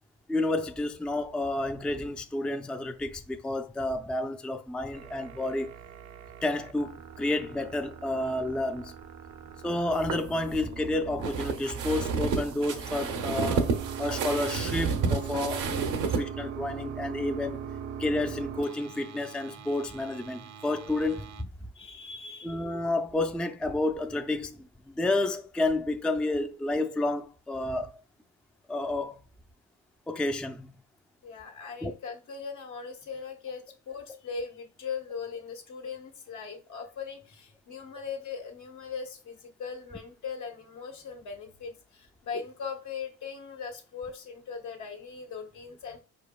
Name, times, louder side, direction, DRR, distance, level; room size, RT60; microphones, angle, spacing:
voice 1, 0.3-5.8 6.4-8.9 9.6-13.7 14.0-17.7 18.0-21.5 22.4-28.0 28.7-29.2 30.1-30.7 31.8-31.9, left 2 dB, 5° left, 0.4 m, -30 dB
sound 1, 4.9-21.4, right 8 dB, 65° right, 0.6 m, -41 dB
sound 2, 9.9-16.2, right 5 dB, 85° right, 0.9 m, -30 dB
voice 2, 21.7-22.6 31.2-46.0, left 5 dB, 75° left, 1.6 m, -39 dB
5.1 x 4.5 x 2.3 m
cardioid pair, 90°, 30 cm